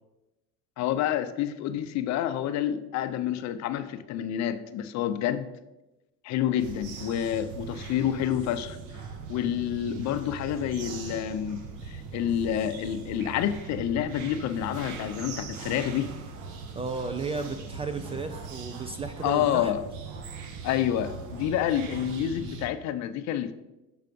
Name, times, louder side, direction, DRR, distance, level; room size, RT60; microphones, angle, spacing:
voice 1, 0.8-5.5 6.2-8.8 9.3-11.6 11.9-16.2 19.2-19.8 20.6-23.5, left 10 dB, 50° left, 11 dB, 0.6 m, -28 dB
sound 1, 6.6-22.7, right 5 dB, 60° right, 1.2 m, -40 dB
voice 2, 16.7-19.7, right 4 dB, 15° right, 9 dB, 0.3 m, -34 dB
6.8 x 4.8 x 5.2 m, 0.99 s
supercardioid pair, 115°, 35 cm